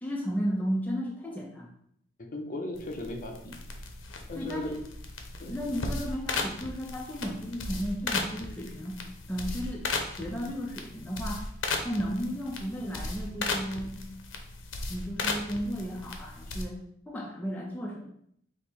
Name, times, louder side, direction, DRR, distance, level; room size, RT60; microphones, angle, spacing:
voice 1, 0.0-1.8 4.4-4.8 5.5-9.0 9.3-11.4 11.8-14.0 14.9-16.8 17.1-18.1, equal, 10° left, -2 dB, 0.5 m, -34 dB
voice 2, 2.2-3.6 4.3-4.7 5.4-5.6, left 1 dB, 45° left, 2 dB, 0.8 m, -37 dB
sound 1, 2.7-16.6, left 3 dB, 75° left, 0.7 m, -36 dB
5.1 x 2.1 x 4.3 m, 0.69 s
head